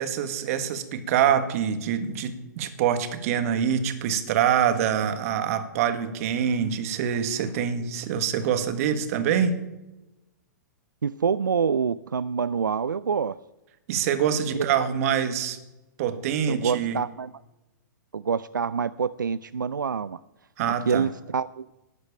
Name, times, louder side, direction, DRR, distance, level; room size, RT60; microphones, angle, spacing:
voice 1, 0.0-9.6 13.9-15.6 16.0-17.0 20.6-21.0, right 8 dB, 50° right, 10 dB, 1.6 m, -25 dB
voice 2, 11.0-13.4 14.5-14.9 16.5-17.3 18.1-20.2 20.9-21.7, right 6 dB, 90° right, 16 dB, 0.4 m, -26 dB
12.0 x 8.0 x 8.6 m, 1.0 s
hypercardioid pair, 120°, 10 cm